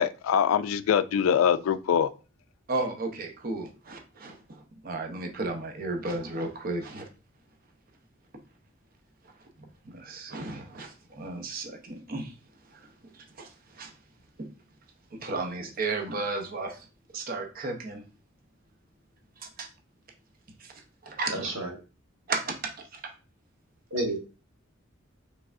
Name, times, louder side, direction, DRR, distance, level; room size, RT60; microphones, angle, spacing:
voice 1, 0.0-2.1, left 8 dB, 85° left, 0.3 m, -23 dB
voice 2, 2.7-4.3 4.8-7.0 9.9-12.3 13.4-13.5 13.8-13.9 15.2-16.8 17.1-18.0 19.6-19.7 21.1-21.5 22.3-22.6, right 3 dB, 45° right, 0.7 m, -33 dB
voice 3, 21.3-21.8 23.9-24.2, right 1 dB, 70° right, 1.3 m, -30 dB
4.7 x 3.3 x 2.5 m
head